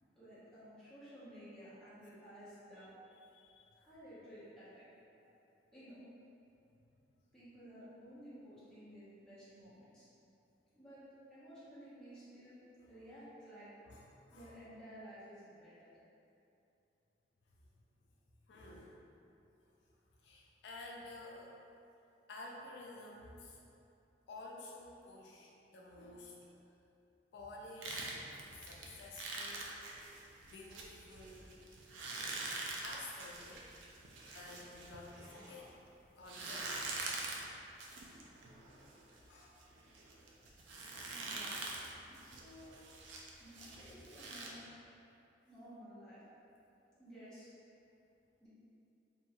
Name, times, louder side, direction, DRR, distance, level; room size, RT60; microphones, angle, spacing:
voice 1, 0.0-2.9 3.7-4.9 5.7-6.0 7.3-10.1 10.7-11.0 11.3-12.6 12.9-13.7 14.3-15.9 41.1-41.6 42.0-42.8 43.4-44.7 45.4-46.2 47.0-47.5 48.4-48.5, equal, 5° left, -13 dB, 0.8 m, -54 dB
voice 2, 3.3-3.7 5.2-5.4 12.8-12.9 13.9-14.5 18.5-19.0 20.2-21.6 22.3-23.6 24.3-26.4 27.3-28.1 28.5-29.8 30.4-31.6 32.8-33.7 34.3-35.8 36.2-36.9 39.3-39.6, left 2 dB, 65° left, -3 dB, 0.3 m, -51 dB
sound 1, 27.8-35.7 36.2-44.5, right 3 dB, 90° right, 0.4 m, -45 dB
3.0 x 2.6 x 2.2 m, 2.7 s
head